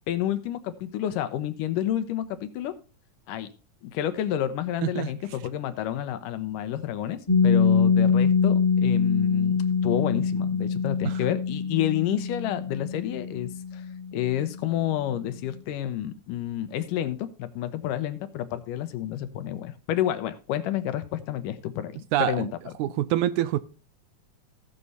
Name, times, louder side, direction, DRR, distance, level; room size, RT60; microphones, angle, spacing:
voice 1, 0.1-2.7 3.3-3.5 3.8-13.8 14.1-22.5, left 11 dB, 85° left, 2.6 m, -30 dB
Piano, 7.3-14.6, left 6 dB, 15° left, 1.2 m, -24 dB
voice 2, 22.1-22.5 22.8-23.6, right 13 dB, 80° right, 1.9 m, -26 dB
18.5 x 6.9 x 2.7 m
omnidirectional pair, 3.8 m